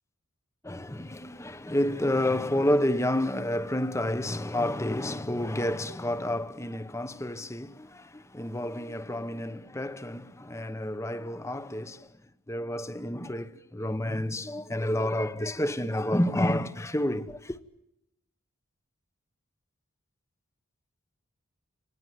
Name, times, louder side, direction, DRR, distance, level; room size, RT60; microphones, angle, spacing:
voice 1, 0.6-12.1 12.5-17.6, left 1 dB, 15° left, 0.9 m, -30 dB
26.0 x 19.5 x 9.6 m
head